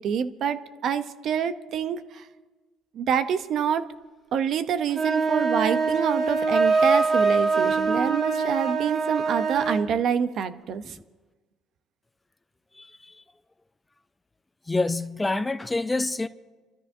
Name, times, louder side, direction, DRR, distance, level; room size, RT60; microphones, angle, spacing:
voice 1, 0.0-2.3 2.9-3.8 4.3-11.0, right 8 dB, 55° right, 0.7 m, -26 dB
sound 1, 4.9-9.9, right 4 dB, 35° right, 2.0 m, -23 dB
voice 2, 12.8-13.1 14.7-16.3, left 2 dB, 15° left, 0.5 m, -27 dB
28.0 x 13.0 x 2.7 m
cardioid pair, 105°, 0 cm